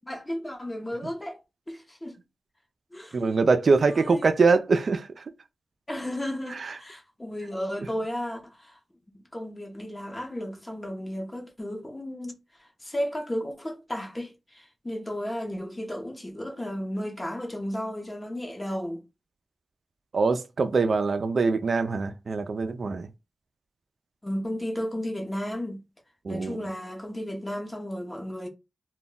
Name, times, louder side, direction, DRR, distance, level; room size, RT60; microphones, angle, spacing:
voice 1, 0.1-1.4 1.7-2.1 2.9-3.4 3.9-4.3 5.9-8.8 9.3-12.3 12.6-19.0 24.2-25.8 26.3-28.5, equal, 25° left, 0.8 m, -34 dB
voice 2, 3.1-5.2 6.5-6.7 20.1-23.1 26.2-26.6, right 4 dB, 65° right, 0.3 m, -24 dB
2.2 x 2.0 x 3.7 m
cardioid pair, 45°, 0 cm